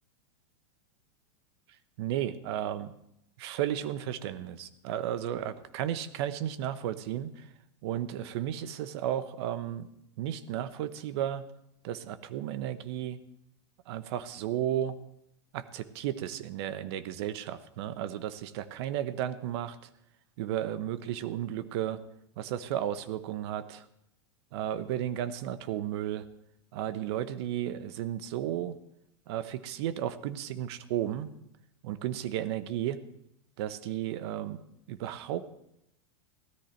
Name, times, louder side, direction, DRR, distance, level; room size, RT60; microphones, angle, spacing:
voice 1, 2.0-2.9 3.4-7.4 7.8-9.9 10.2-11.5 11.8-13.2 13.9-15.0 15.5-19.8 20.4-22.0 22.4-23.8 24.5-26.2 26.7-28.8 29.3-31.3 31.8-33.0 33.6-35.5, right 11 dB, 60° right, 13 dB, 1.2 m, -33 dB
16.5 x 13.5 x 4.6 m, 0.80 s
hypercardioid pair, 105°, 15 cm